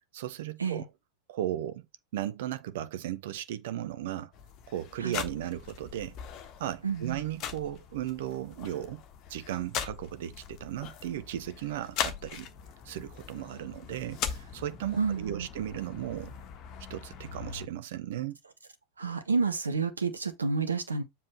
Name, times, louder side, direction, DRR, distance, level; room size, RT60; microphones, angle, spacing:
voice 1, 0.1-0.9 1.3-1.8 2.1-4.3 4.7-6.2 6.6-9.0 9.3-12.5 12.8-16.3 16.9-18.4, right 12 dB, 55° right, 0.8 m, -36 dB
sound 1, 4.3-17.7, left 8 dB, 35° left, 1.3 m, -40 dB
voice 2, 6.8-7.2 15.0-15.5 19.0-21.0, right 4 dB, 75° right, 1.3 m, -29 dB
7.5 x 4.1 x 4.5 m
figure-of-eight pair, 90°, 0 cm